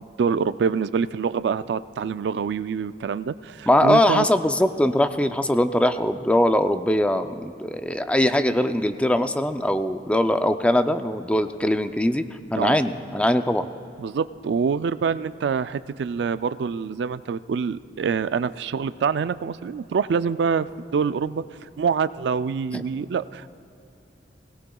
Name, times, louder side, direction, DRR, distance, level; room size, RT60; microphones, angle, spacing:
voice 1, 0.2-4.3 12.5-12.8 14.0-21.4 21.8-23.5, right 6 dB, 75° right, 14 dB, 0.3 m, -25 dB
voice 2, 3.7-12.2 12.5-13.7 22.7-22.8, left 1 dB, 5° left, 9 dB, 0.4 m, -21 dB
20.5 x 17.5 x 2.3 m, 2.7 s
head